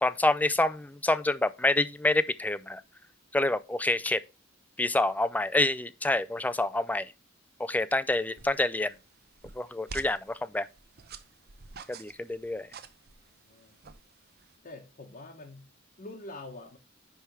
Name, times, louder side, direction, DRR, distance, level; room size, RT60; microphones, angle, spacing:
voice 1, 0.0-2.8 3.3-4.2 4.8-7.1 7.6-8.9 9.6-10.7 11.9-12.7, left 2 dB, 10° left, 0.4 m, -27 dB
sound 1, 8.4-14.6, right 5 dB, 50° right, 0.7 m, -49 dB
voice 2, 13.4-13.8 14.6-15.7 16.0-16.8, left 2 dB, 40° left, 1.0 m, -45 dB
10.0 x 3.4 x 4.7 m
head